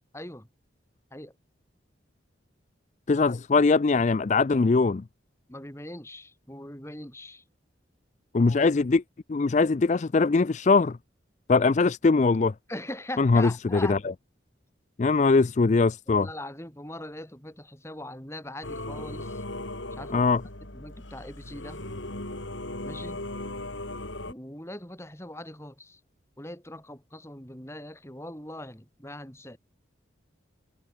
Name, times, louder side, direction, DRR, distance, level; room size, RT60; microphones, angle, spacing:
voice 1, 0.1-0.5 1.1-1.3 5.5-7.4 12.7-14.0 16.1-19.4 19.9-20.3 20.7-21.8 22.8-23.2 24.3-26.0 26.4-29.6, left 1 dB, 15° left, 4.2 m, -41 dB
voice 2, 3.1-5.0 8.3-9.0 9.3-11.0 11.5-12.5 13.2-14.0 15.0-16.3 20.1-20.4, left 4 dB, 40° left, 0.4 m, -21 dB
Singing / Musical instrument, 18.6-24.3, left 1 dB, 85° left, 5.5 m, -37 dB
head